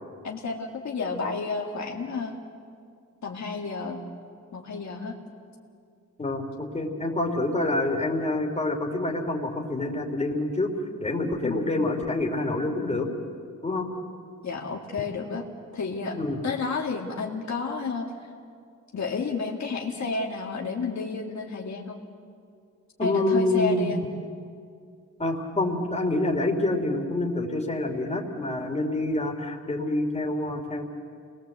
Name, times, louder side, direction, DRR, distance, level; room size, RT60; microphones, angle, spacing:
voice 1, 0.2-2.4 3.2-4.0 4.5-5.1 11.4-11.7 14.4-15.4 15.7-16.2 16.4-18.1 18.9-22.0 23.0-24.0, left 4 dB, 65° left, 0 dB, 2.3 m, -31 dB
voice 2, 6.2-10.7 11.0-13.1 13.6-13.9 16.1-16.4 23.0-24.0 25.2-30.8, left 2 dB, 20° left, 1 dB, 3.1 m, -27 dB
29.5 x 21.0 x 8.1 m, 2.3 s
wide cardioid pair, 130°, 31 cm